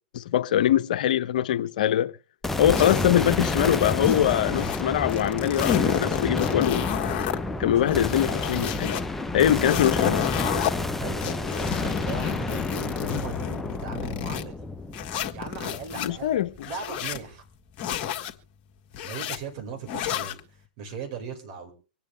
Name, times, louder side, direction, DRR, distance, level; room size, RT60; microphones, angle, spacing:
voice 1, 0.1-2.1 2.6-6.9 7.6-8.9 9.3-10.2 16.0-16.7, left 11 dB, 65° left, 0.8 m, -23 dB
sound 1, 2.4-16.7, left 2 dB, 5° left, 0.7 m, -30 dB
sound 2, 2.7-4.8 5.1-7.4 7.8-9.0 9.4-10.7 11.2-14.4 14.9-16.1 16.6-17.2 17.8-18.3 18.9-19.4 19.9-20.4, left 10 dB, 40° left, 1.6 m, -30 dB
voice 2, 10.6-14.7 15.3-17.4 17.8-18.1 19.0-21.7, right 5 dB, 50° right, 5.2 m, -39 dB
25.5 x 9.0 x 3.3 m
hypercardioid pair, 120°, 5 cm